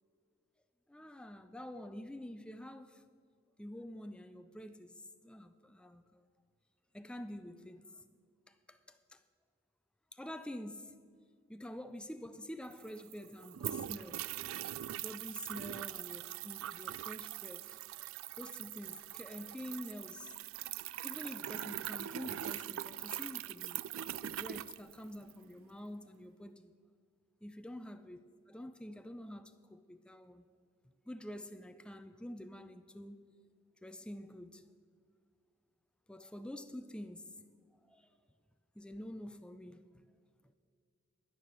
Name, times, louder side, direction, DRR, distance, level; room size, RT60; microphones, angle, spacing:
voice 1, 0.9-3.0 3.6-6.3 6.9-8.1 8.5-9.2 10.1-11.0 11.5-14.5 15.0-17.8 18.4-20.4 21.0-23.8 24.2-26.7 27.4-30.5 31.0-33.3 33.8-34.7 36.1-37.4 37.8-38.1 38.8-40.0 40.4-40.5, left 1 dB, 5° left, 0.4 m, -47 dB
sound 1, 12.4-12.5 12.7-25.4, right 12 dB, 80° right, 0.3 m, -42 dB
10.5 x 9.5 x 6.2 m
head